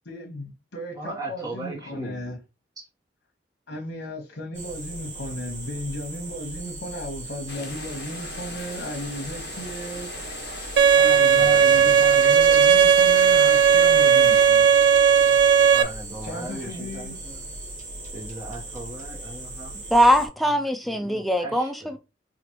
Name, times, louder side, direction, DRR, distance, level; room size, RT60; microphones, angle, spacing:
voice 1, 0.0-2.4 3.7-10.1 10.7-14.7 16.2-17.2, equal, 85° left, 1.1 m, -35 dB
voice 2, 0.9-2.1 2.8-2.9 11.4-12.0 15.7-17.4 18.1-19.7 20.1-20.2 20.9-21.9, right 2 dB, 20° right, 1.0 m, -38 dB
sound 1, 4.5-20.3, right 2 dB, 45° right, 1.5 m, -38 dB
sound 2, 7.5-14.5, left 3 dB, 60° left, 0.9 m, -39 dB
Bowed string instrument, 10.8-15.8, right 7 dB, 85° right, 0.4 m, -16 dB
voice 3, 19.9-22.0, equal, ahead, 0.4 m, -21 dB
5.0 x 2.5 x 3.0 m
head